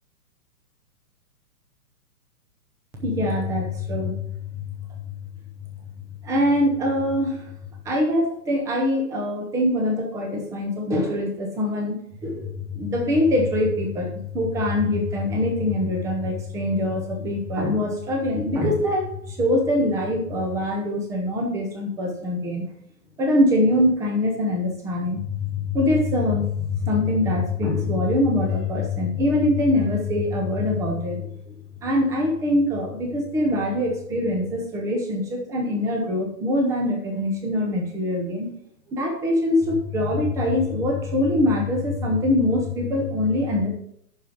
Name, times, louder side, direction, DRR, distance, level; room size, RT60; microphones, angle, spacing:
voice 1, 3.0-5.0 6.2-7.5 7.8-11.9 12.2-22.6 23.2-31.6 31.8-38.5 38.9-43.7, left 1 dB, 5° right, 2 dB, 0.7 m, -23 dB
11.0 x 4.6 x 5.1 m, 0.71 s
hypercardioid pair, 150°, 49 cm